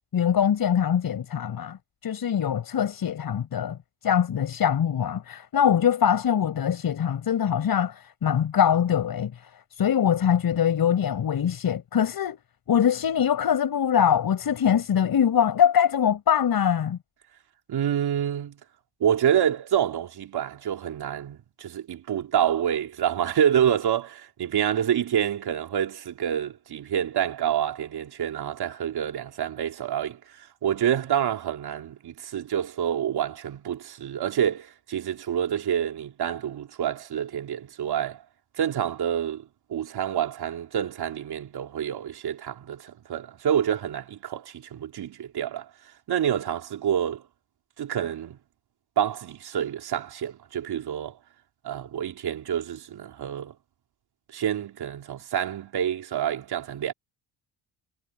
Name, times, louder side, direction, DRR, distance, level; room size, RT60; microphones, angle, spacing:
voice 1, 0.1-1.8 2.0-3.8 4.0-9.5 9.8-12.4 12.7-17.0, left 8 dB, 55° left, 6.2 m, -23 dB
voice 2, 17.7-18.6 19.0-38.2 38.6-45.7 46.1-47.2 47.8-48.4 49.0-51.2 51.6-53.5 54.3-56.9, right 9 dB, 65° right, 3.8 m, -27 dB
cardioid pair, 95°, 42 cm